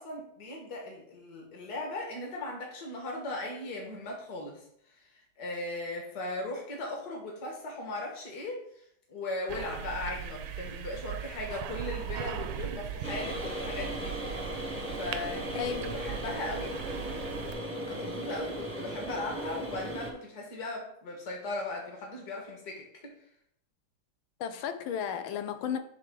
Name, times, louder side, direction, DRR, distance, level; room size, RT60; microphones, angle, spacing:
voice 1, 0.0-4.6 5.4-8.6 9.1-14.2 15.0-15.6 15.9-16.8 17.8-23.1, left 2 dB, 55° left, 0 dB, 2.0 m, -38 dB
sound 1, 9.5-17.5, right 9 dB, 85° right, 1.5 m, -39 dB
sound 2, 13.0-20.1, right 1 dB, 10° right, 0.7 m, -37 dB
voice 2, 15.5-16.0 24.4-25.8, left 8 dB, 85° left, 8 dB, 1.5 m, -34 dB
9.9 x 3.6 x 3.8 m, 0.69 s
omnidirectional pair, 2.2 m